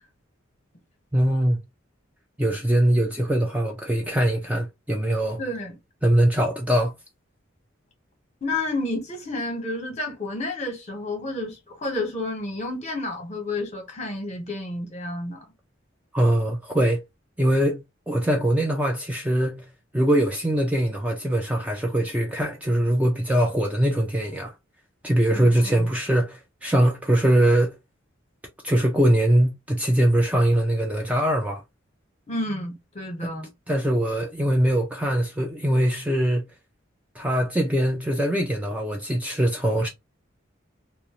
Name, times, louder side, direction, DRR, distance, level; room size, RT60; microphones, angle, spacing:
voice 1, 1.1-1.6 2.4-5.4 6.0-6.9 16.1-17.0 17.4-19.6 19.9-24.5 25.0-27.8 28.6-31.6 33.7-36.4 37.2-39.9, right 1 dB, 5° right, 0.4 m, -22 dB
voice 2, 5.4-5.8 8.4-15.5 25.3-25.9 32.3-33.5, left 2 dB, 35° left, 1.0 m, -30 dB
2.5 x 2.0 x 2.9 m
head